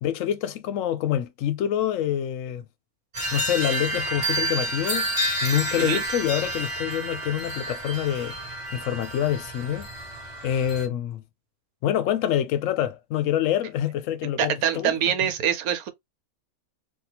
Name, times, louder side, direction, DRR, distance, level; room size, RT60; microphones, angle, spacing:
voice 1, 0.0-2.6 3.3-5.1 5.4-8.3 8.7-9.9 10.4-11.2 11.8-15.0 15.2-15.3, left 10 dB, 65° left, 0.9 m, -26 dB
sound 1, 3.1-10.9, right 1 dB, 25° right, 1.1 m, -30 dB
voice 2, 14.4-15.9, right 9 dB, 75° right, 1.1 m, -24 dB
3.6 x 2.3 x 2.8 m
omnidirectional pair, 1.6 m